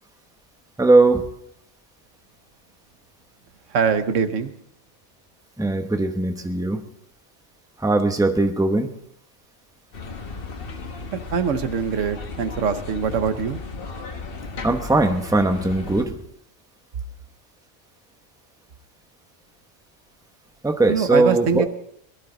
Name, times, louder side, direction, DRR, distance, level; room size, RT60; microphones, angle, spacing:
voice 1, 0.8-1.2 5.6-6.8 7.8-8.9 14.6-16.2 20.6-21.6, right 2 dB, 5° right, 5 dB, 1.0 m, -19 dB
voice 2, 3.7-4.5 11.1-13.6 20.9-21.7, right 6 dB, 85° right, 9 dB, 1.3 m, -23 dB
sound 1, 9.9-16.1, left 4 dB, 50° left, 1.3 m, -35 dB
19.5 x 12.0 x 4.0 m, 0.71 s
omnidirectional pair, 1.3 m